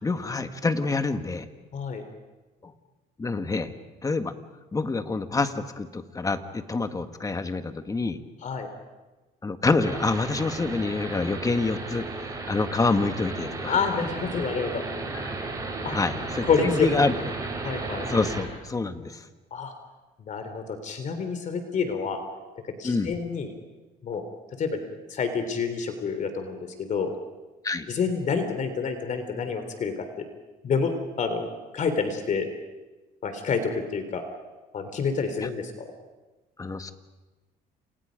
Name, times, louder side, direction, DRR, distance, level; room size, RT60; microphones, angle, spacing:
voice 1, 0.0-1.5 2.6-2.7 3.2-3.7 4.0-4.3 4.7-8.2 9.4-12.1 12.5-13.8 15.2-15.4 15.9-17.1 18.1-19.2 22.8-23.1 27.6-27.9 36.6-36.9, left 3 dB, 20° left, 8 dB, 1.7 m, -27 dB
voice 2, 1.7-2.0 8.4-8.7 13.7-14.8 15.8-16.0 16.4-16.9 17.6-18.1 19.5-19.7 20.2-22.2 22.8-23.5 24.0-24.2 24.6-24.8 25.1-27.1 27.9-30.1 30.6-31.5 31.7-32.5 33.2-34.2 34.7-35.9, left 5 dB, 50° left, 7 dB, 3.3 m, -28 dB
sound 1, 9.8-18.4, right 3 dB, 20° right, 7.5 m, -34 dB
30.0 x 28.0 x 5.3 m, 1.2 s
cardioid pair, 110°, 17 cm